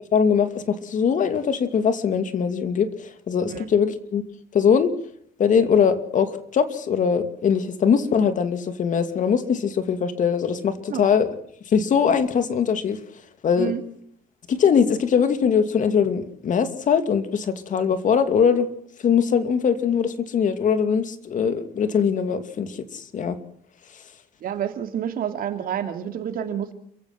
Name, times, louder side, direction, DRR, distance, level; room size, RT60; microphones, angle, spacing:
voice 1, 0.1-4.2 4.5-4.9 5.4-11.3 11.7-13.0 13.4-13.7 14.5-18.7 19.0-23.4, left 7 dB, 50° left, 10 dB, 2.6 m, -21 dB
voice 2, 24.4-26.7, right 9 dB, 60° right, 7 dB, 3.0 m, -28 dB
29.5 x 16.0 x 6.1 m, 0.68 s
cardioid pair, 110°, 17 cm